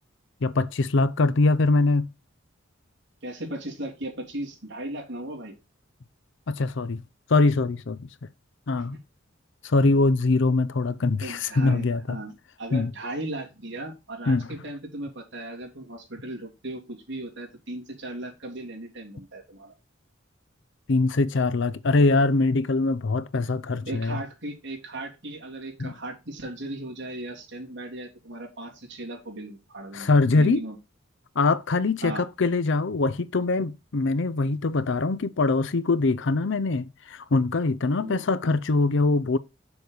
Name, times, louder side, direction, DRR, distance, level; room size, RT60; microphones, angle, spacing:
voice 1, 0.4-2.1 6.5-7.0 7.3-8.1 8.7-9.0 9.6-12.2 12.7-12.9 14.3-14.5 20.9-24.2 25.8-25.9 29.9-30.6 31.4-39.4, left 3 dB, 60° left, 0.6 m, -23 dB
voice 2, 3.2-5.6 11.2-19.7 23.9-30.1 30.4-30.8 32.0-32.2 38.0-38.2, right 1 dB, 60° right, 3.0 m, -37 dB
6.9 x 6.7 x 4.0 m
head